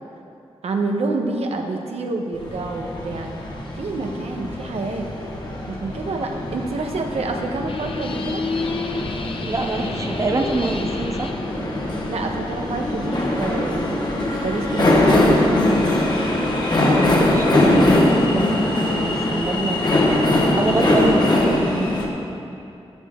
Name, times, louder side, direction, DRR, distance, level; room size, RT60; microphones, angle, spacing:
voice 1, 0.6-3.3 3.7-5.1 5.7-8.5 11.9-15.9 20.7-21.3, right 3 dB, 85° right, 3 dB, 1.1 m, -28 dB
sound 1, 2.3-22.1, left 1 dB, 45° left, 1.5 m, -22 dB
sound 2, 7.7-11.5, left 4 dB, 60° left, 0.8 m, -30 dB
voice 2, 9.4-11.3 16.8-20.2 20.5-21.9, right 2 dB, 30° right, 4 dB, 0.6 m, -26 dB
12.5 x 12.0 x 3.7 m, 2.7 s
wide cardioid pair, 155°, 10 cm